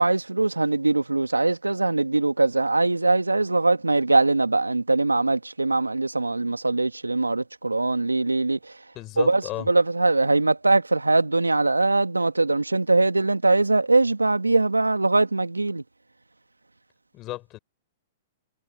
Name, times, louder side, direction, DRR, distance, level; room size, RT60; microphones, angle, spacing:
voice 1, 0.0-8.8 9.2-15.8, right 2 dB, 90° right, 2.1 m, -22 dB
voice 2, 8.9-9.7 17.1-17.6, left 17 dB, 35° left, 6.1 m, -34 dB
figure-of-eight pair, 110°, 0 cm